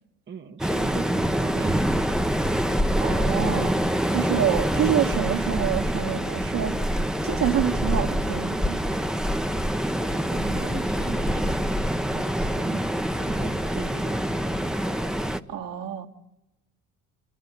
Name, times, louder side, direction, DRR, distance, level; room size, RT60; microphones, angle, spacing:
voice 1, 0.3-2.5 10.1-12.9 13.2-14.5, right 6 dB, 25° right, 1.0 m, -40 dB
Waves surf, 0.6-15.4, equal, ahead, 0.7 m, -25 dB
voice 2, 3.0-6.7 7.2-8.8 15.5-16.1, right 10 dB, 55° right, 1.8 m, -27 dB
26.5 x 12.0 x 9.5 m
hypercardioid pair, 65°, 42 cm